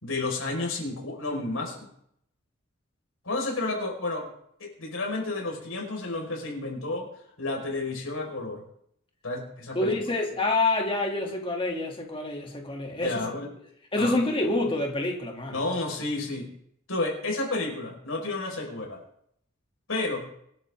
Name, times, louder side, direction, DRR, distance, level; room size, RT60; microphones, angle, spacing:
voice 1, 0.0-1.9 3.2-4.3 4.6-7.1 7.4-8.6 9.2-10.0 13.0-13.5 14.0-14.2 15.5-16.5 16.9-19.0 19.9-20.2, left 2 dB, 80° left, 0 dB, 5.2 m, -31 dB
voice 2, 9.7-13.1 13.9-15.6, left 2 dB, 25° left, 0 dB, 2.9 m, -27 dB
25.5 x 10.5 x 3.8 m, 0.71 s
head